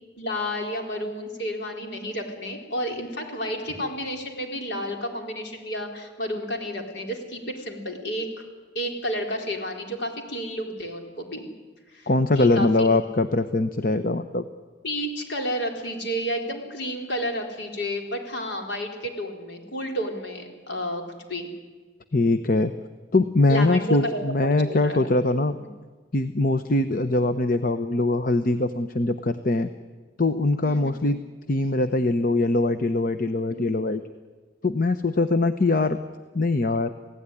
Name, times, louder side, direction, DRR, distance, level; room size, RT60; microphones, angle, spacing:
voice 1, 0.2-8.4 8.7-11.4 11.9-13.0 14.8-21.5 23.5-25.1 25.6-25.7 30.6-31.1 33.5-33.8, equal, 65° left, 2 dB, 4.3 m, -31 dB
voice 2, 12.1-14.5 22.1-22.7 23.1-25.6 26.1-29.7 30.2-31.2 31.5-34.0 34.6-36.0 36.3-36.9, left 2 dB, 50° left, 10 dB, 0.9 m, -22 dB
29.0 x 17.0 x 10.0 m, 1.4 s
head